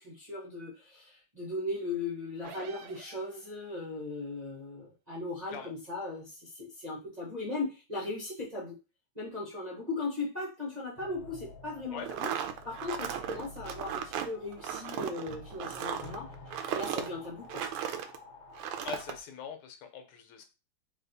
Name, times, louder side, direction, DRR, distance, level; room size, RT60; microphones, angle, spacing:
voice 1, 0.0-8.8 9.1-12.3 12.6-17.6, left 2 dB, 30° right, -6 dB, 0.7 m, -38 dB
sound 1, 2.4-3.8, right 6 dB, 65° right, 1.2 m, -49 dB
sound 2, 11.0-19.2, left 3 dB, 65° left, 1.6 m, -50 dB
sound 3, 12.0-18.2 18.5-19.1, right 9 dB, 85° right, 1.5 m, -36 dB
voice 2, 18.8-20.4, left 7 dB, 85° left, 6 dB, 1.8 m, -42 dB
4.2 x 2.8 x 4.0 m, 0.29 s
omnidirectional pair, 2.4 m